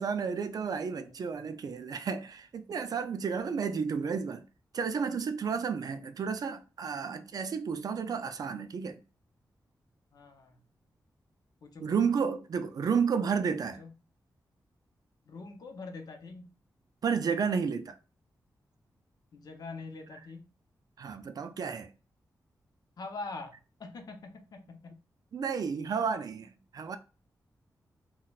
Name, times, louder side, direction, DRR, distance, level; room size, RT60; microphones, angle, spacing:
voice 1, 0.0-4.4 4.7-9.0 11.8-13.8 17.0-18.0 21.0-21.9 25.3-27.0, right 6 dB, 60° right, 0.3 m, -32 dB
voice 2, 10.1-10.6 11.6-12.0 13.8-13.9 15.3-16.5 19.3-20.4 23.0-25.0, left 3 dB, 65° left, 0.6 m, -44 dB
4.0 x 2.1 x 2.3 m
wide cardioid pair, 110°, 7 cm